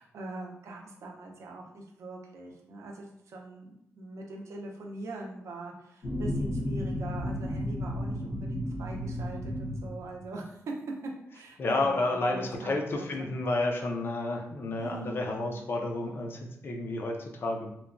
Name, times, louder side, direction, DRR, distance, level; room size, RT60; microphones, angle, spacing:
voice 1, 0.0-10.7 11.3-13.3 14.8-15.5, right 2 dB, 70° right, 0 dB, 0.5 m, -42 dB
sound 1, 6.0-10.3, left 1 dB, 85° left, 0.9 m, -33 dB
voice 2, 11.6-17.7, left 2 dB, 45° left, 2 dB, 0.4 m, -31 dB
2.8 x 2.1 x 2.4 m, 0.76 s
wide cardioid pair, 160°, 5 cm